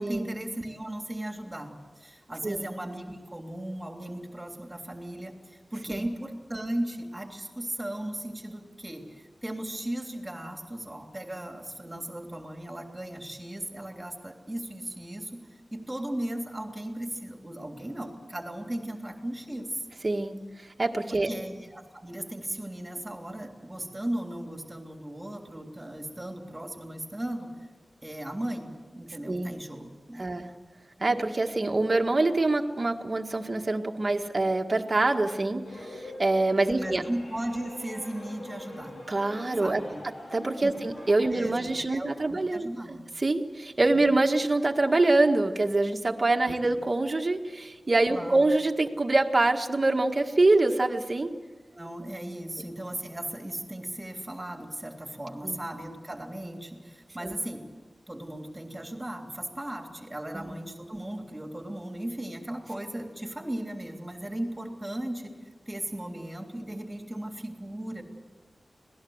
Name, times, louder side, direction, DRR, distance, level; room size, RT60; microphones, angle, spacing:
voice 1, 0.0-19.8 21.1-27.5 28.0-30.3 36.7-39.0 39.6-40.0 40.6-40.7 41.3-43.0 43.9-44.1 46.4-46.8 48.1-48.4 51.7-57.6 58.1-65.3 65.7-68.0, right 1 dB, 15° right, 3 dB, 3.2 m, -37 dB
voice 2, 20.0-21.3 29.3-29.5 30.2-30.5 31.0-37.0 39.1-39.8 40.3-51.3 55.4-55.6 57.2-57.3 60.3-60.5, right 2 dB, 35° right, 4 dB, 1.7 m, -25 dB
sound 1, 35.6-41.3, left 1 dB, 80° left, 5.0 m, -43 dB
26.0 x 18.5 x 8.0 m, 1.3 s
wide cardioid pair, 105°, 0 cm